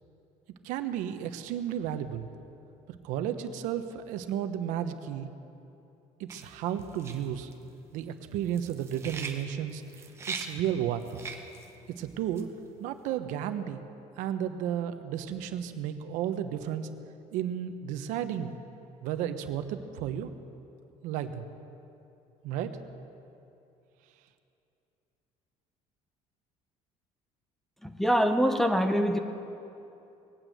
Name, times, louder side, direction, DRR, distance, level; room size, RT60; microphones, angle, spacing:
voice 1, 0.6-2.3 2.9-5.3 6.2-7.5 7.9-9.8 10.3-11.0 11.9-12.5 12.8-13.8 14.2-16.9 17.3-18.5 19.0-20.3 21.0-21.4 22.4-22.8, right 10 dB, 80° right, 9 dB, 1.0 m, -33 dB
sound 1, 6.3-12.8, right 4 dB, 20° right, 1.0 m, -42 dB
voice 2, 27.8-29.2, equal, ahead, 4 dB, 0.5 m, -24 dB
19.5 x 9.1 x 8.0 m, 2.8 s
cardioid pair, 175°, 13 cm